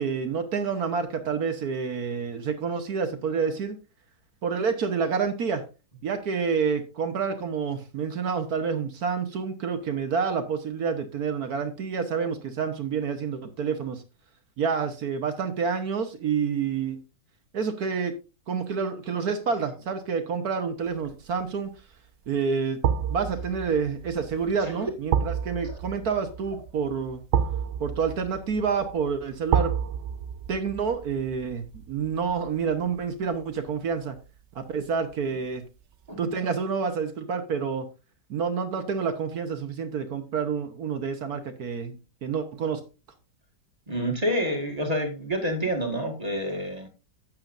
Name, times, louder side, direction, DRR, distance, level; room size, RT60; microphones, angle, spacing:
voice 1, 0.0-3.8 4.4-5.6 6.0-14.0 14.6-17.0 17.5-18.1 18.5-21.7 22.3-22.8 23.1-27.2 27.8-29.7 30.5-34.2 34.5-35.6 36.2-37.9 38.3-42.8, right 6 dB, 60° right, 8 dB, 1.5 m, -28 dB
sound 1, 21.0-21.4 22.8-33.8 34.2-34.3, right 8 dB, 75° right, 0.6 m, -31 dB
voice 2, 43.9-46.9, equal, 20° right, 3 dB, 1.9 m, -28 dB
12.0 x 8.5 x 2.6 m, 0.31 s
omnidirectional pair, 1.9 m